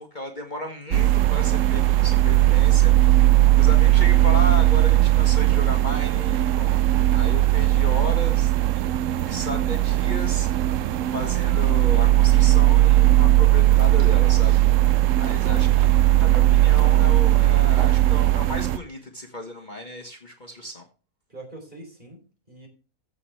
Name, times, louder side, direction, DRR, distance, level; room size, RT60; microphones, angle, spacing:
voice 1, 0.0-6.7 7.1-10.8 11.1-14.6 15.2-20.9, left 1 dB, 35° left, 2 dB, 1.5 m, -34 dB
sound 1, 0.9-18.8, right 15 dB, 70° right, 0.9 m, -18 dB
voice 2, 15.4-15.7 21.3-22.7, right 1 dB, 35° right, 2 dB, 4.0 m, -42 dB
15.5 x 6.6 x 3.4 m, 0.36 s
omnidirectional pair, 1.5 m